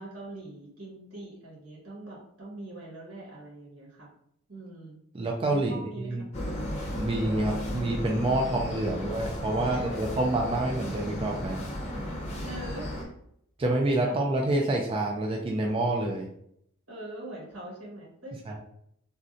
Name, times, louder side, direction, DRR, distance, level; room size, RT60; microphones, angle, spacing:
voice 1, 0.0-4.1 4.5-5.0 5.5-6.5 9.1-9.2 9.7-10.0 12.4-13.1 14.0-14.2 16.9-18.4, right 1 dB, 85° right, -4 dB, 1.4 m, -43 dB
voice 2, 5.1-6.2 6.9-11.6 13.6-16.3 18.5-18.6, right 2 dB, 25° right, 0 dB, 0.3 m, -28 dB
sound 1, 6.3-13.0, left 1 dB, 35° left, 0.7 m, -34 dB
3.6 x 2.1 x 2.6 m, 0.71 s
head